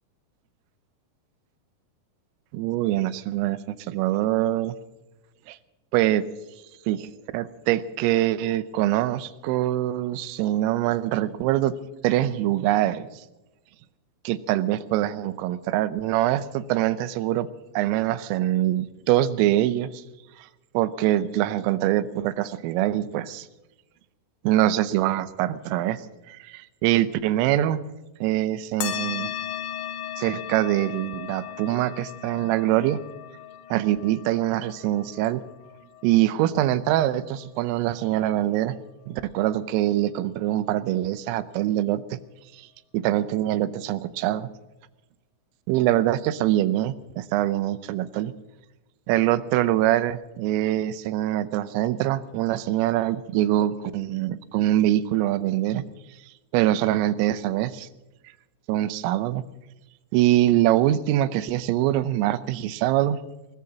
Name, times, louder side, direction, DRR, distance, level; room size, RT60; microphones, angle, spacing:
voice 1, 2.5-4.8 5.5-5.6 5.9-6.2 6.9-11.7 12.0-13.2 14.2-17.5 17.7-20.0 20.4-20.5 20.7-23.5 24.4-26.0 26.3-27.8 28.2-29.3 30.2-33.0 33.7-35.4 36.0-38.8 39.1-42.2 42.5-42.7 42.9-44.5 45.7-48.3 49.1-55.9 56.5-57.9 58.7-59.5 60.1-63.2, right 14 dB, 85° right, 13 dB, 3.3 m, -24 dB
sound 1, 28.8-37.7, left 11 dB, 75° left, 2.3 m, -37 dB
20.5 x 20.5 x 2.8 m, 1.0 s
omnidirectional pair, 5.9 m